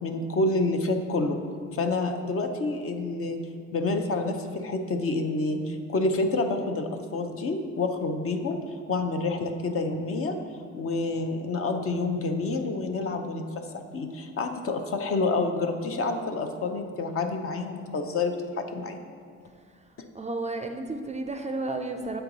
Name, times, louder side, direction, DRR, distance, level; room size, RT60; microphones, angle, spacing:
voice 1, 0.0-1.4 1.7-3.4 3.7-8.6 8.9-10.4 10.7-13.4 13.7-19.0, left 3 dB, 50° left, 5 dB, 0.7 m, -28 dB
voice 2, 20.1-22.2, right 2 dB, 25° right, 5 dB, 0.4 m, -32 dB
7.7 x 4.5 x 3.9 m, 2.2 s
cardioid pair, 90°, 30 cm